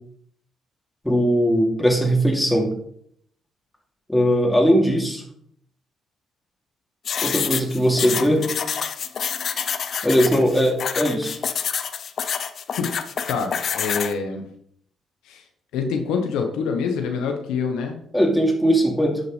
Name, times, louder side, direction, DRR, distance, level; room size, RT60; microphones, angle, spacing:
voice 1, 1.0-2.7 4.1-5.2 7.2-8.5 10.0-11.4 18.1-19.2, equal, 5° left, 0 dB, 2.8 m, -19 dB
sound 1, 7.1-14.1, left 7 dB, 60° left, 0.8 m, -27 dB
voice 2, 13.3-14.4 15.2-15.4 15.7-18.0, left 5 dB, 80° left, 4 dB, 1.1 m, -26 dB
11.0 x 6.6 x 3.3 m, 0.67 s
hypercardioid pair, 50°, 0 cm